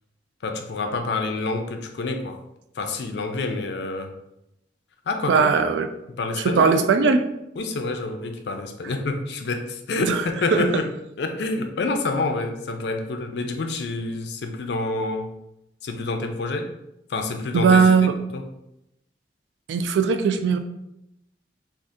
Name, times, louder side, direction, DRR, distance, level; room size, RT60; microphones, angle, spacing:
voice 1, 0.4-2.4 2.8-4.1 5.1-5.5 6.2-6.8 7.6-10.9 11.2-15.3 15.8-16.7 17.1-17.9 18.3-18.4, left 3 dB, 70° left, 5 dB, 0.4 m, -27 dB
voice 2, 5.3-5.9 6.3-7.2 10.0-10.2 10.5-10.7 17.5-18.2 19.7-20.6, right 5 dB, 85° right, 8 dB, 0.3 m, -19 dB
3.6 x 2.4 x 2.6 m, 0.84 s
head